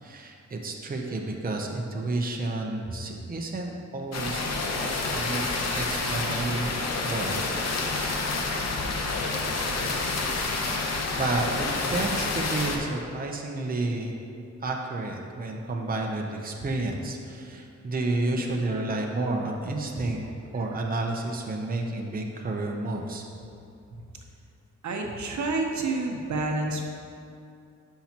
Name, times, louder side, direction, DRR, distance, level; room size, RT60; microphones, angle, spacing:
voice 1, 0.0-4.4 4.8-5.5 5.7-7.4 11.1-14.1 14.6-20.3 20.5-23.2, right 2 dB, 30° right, 1 dB, 0.7 m, -30 dB
sound 1, 4.1-12.8, left 3 dB, 60° left, 0.8 m, -28 dB
voice 2, 24.8-26.8, right 2 dB, 75° right, 2 dB, 0.9 m, -28 dB
12.0 x 5.7 x 2.9 m, 2.5 s
wide cardioid pair, 130°, 29 cm